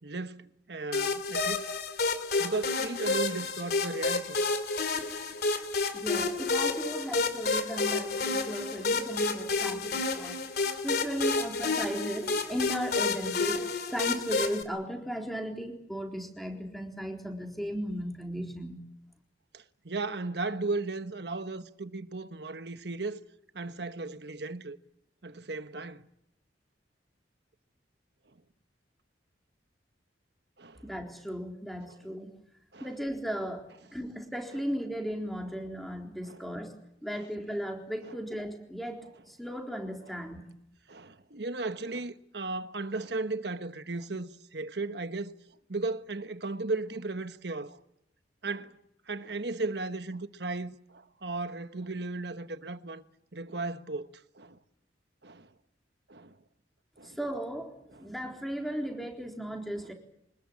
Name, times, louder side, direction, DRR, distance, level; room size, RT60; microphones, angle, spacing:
voice 1, 0.0-1.7 2.4-4.4 19.5-23.2 23.5-24.8 25.2-26.0 30.6-30.8 31.8-32.0 32.7-32.9 36.2-36.4 37.1-37.3 40.0-40.1 40.9-45.4 45.7-47.8 48.4-48.8 49.1-53.0 53.3-54.1 54.3-54.6 55.2-55.5 56.1-56.4 57.0-57.2 57.9-58.1, right 3 dB, 60° right, 1.3 m, -36 dB
sound 1, 0.9-14.6, left 3 dB, 55° left, 2.8 m, -30 dB
voice 2, 5.9-10.4 10.8-18.9 30.8-32.3 32.8-36.7 37.0-40.4 57.0-57.7 58.0-59.9, equal, ahead, 3.9 m, -36 dB
25.5 x 20.5 x 8.7 m
head